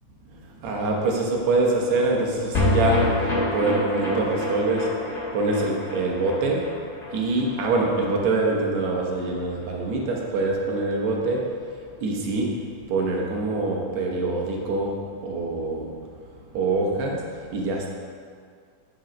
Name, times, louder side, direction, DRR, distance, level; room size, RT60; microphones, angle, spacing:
voice 1, 0.5-5.0 5.3-6.7 7.1-11.6 12.0-16.0 16.5-17.2 17.5-17.9, right 2 dB, 65° right, -1 dB, 2.3 m, -25 dB
sound 1, 2.5-9.0 9.2-9.3 9.6-9.7, left 1 dB, 30° left, 1.7 m, -27 dB
9.4 x 5.7 x 5.1 m, 2.1 s
omnidirectional pair, 3.6 m